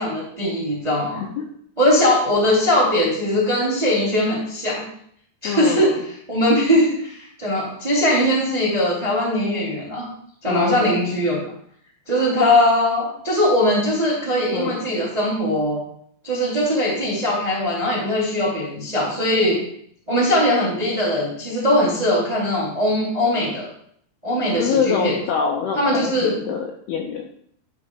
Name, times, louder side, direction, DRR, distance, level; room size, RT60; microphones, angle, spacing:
voice 1, 0.0-1.2 1.8-4.8 5.4-6.0 6.3-10.1 10.4-11.4 12.1-15.8 16.2-19.6 20.1-23.7 24.2-25.1 25.7-26.4, left 1 dB, 15° right, -5 dB, 1.4 m, -20 dB
voice 2, 5.4-6.0 10.5-11.0 12.2-12.3 14.5-14.8 24.6-27.3, left 6 dB, 85° left, 2 dB, 2.3 m, -25 dB
12.0 x 4.9 x 3.6 m, 0.65 s
omnidirectional pair, 5.3 m